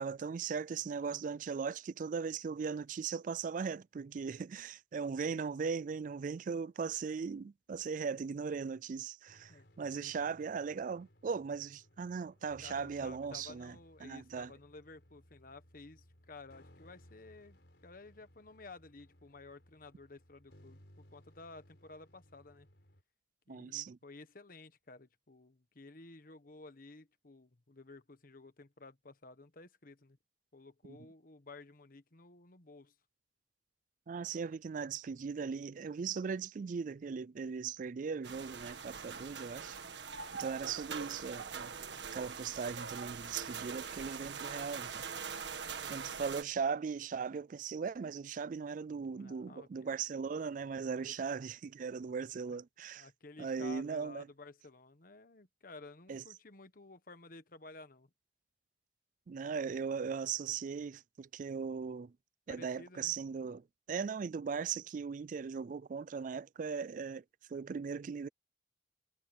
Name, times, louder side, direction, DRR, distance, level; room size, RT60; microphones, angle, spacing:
voice 1, 0.0-13.8 14.0-14.5 23.5-24.0 30.9-31.0 34.1-39.8 40.4-41.7 42.1-45.0 45.9-53.1 53.4-54.3 56.1-56.2 59.3-62.1 62.5-67.2 67.5-68.3, right 6 dB, 45° right, 0.3 m, -38 dB
sound 1, 9.3-23.0, equal, 70° left, 4.7 m, -63 dB
voice 2, 12.6-22.7 23.5-30.2 30.5-32.9 45.8-46.3 49.2-49.9 51.0-51.1 52.5-52.6 53.0-58.1 62.5-63.1, left 3 dB, 50° left, 1.3 m, -54 dB
sound 2, 38.2-46.4, right 6 dB, 85° right, 1.6 m, -43 dB
head